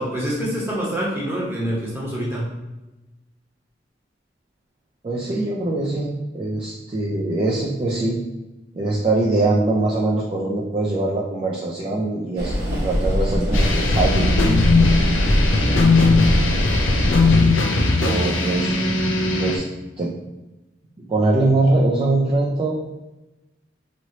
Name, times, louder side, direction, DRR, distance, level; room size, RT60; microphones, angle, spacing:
voice 1, 0.0-2.5, equal, 10° right, -6 dB, 0.8 m, -26 dB
voice 2, 5.0-8.2 8.7-12.6 12.8-14.3 18.0-18.7 19.4-19.7 20.0-20.1 21.0-22.8, right 2 dB, 30° right, -4 dB, 0.3 m, -22 dB
sound 1, 12.4-17.4, equal, 60° right, 0.9 m, -22 dB
sound 2, 13.5-19.6, left 3 dB, 85° left, 0.5 m, -18 dB
3.1 x 2.9 x 2.7 m, 1.0 s
head